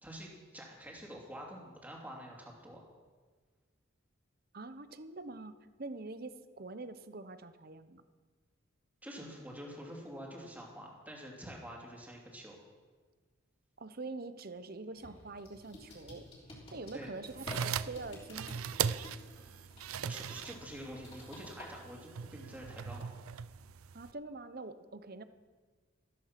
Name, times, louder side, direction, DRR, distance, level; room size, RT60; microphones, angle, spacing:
voice 1, 0.0-2.9 9.0-12.6 16.9-17.1 20.0-23.1, equal, 10° right, -1 dB, 2.7 m, -47 dB
voice 2, 4.5-5.5 5.8-8.0 13.8-16.3 16.7-18.6 23.9-25.2, right 3 dB, 45° right, 11 dB, 0.8 m, -45 dB
sound 1, 14.9-21.7, left 1 dB, 25° left, 3.5 m, -51 dB
sound 2, 17.3-24.1, right 7 dB, 85° right, 0.5 m, -39 dB
14.0 x 13.5 x 5.9 m, 1.4 s
head